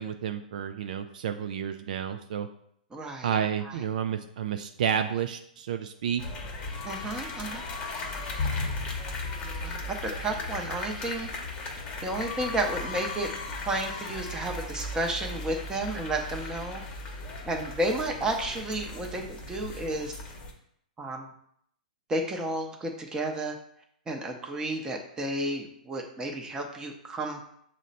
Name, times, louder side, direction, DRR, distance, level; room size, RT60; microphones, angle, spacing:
voice 1, 0.0-2.5 3.2-6.2, right 8 dB, 65° right, 7 dB, 0.3 m, -30 dB
voice 2, 2.9-3.4 3.6-3.8 6.8-7.6 9.6-11.3 12.0-13.3 13.6-16.8 17.5-20.1 21.0-21.3 22.1-23.6 24.1-27.4, right 1 dB, 15° right, 2 dB, 0.7 m, -32 dB
sound 1, 6.2-20.5, left 3 dB, 25° left, 0.9 m, -36 dB
6.3 x 2.1 x 4.0 m, 0.69 s
hypercardioid pair, 125°, 5 cm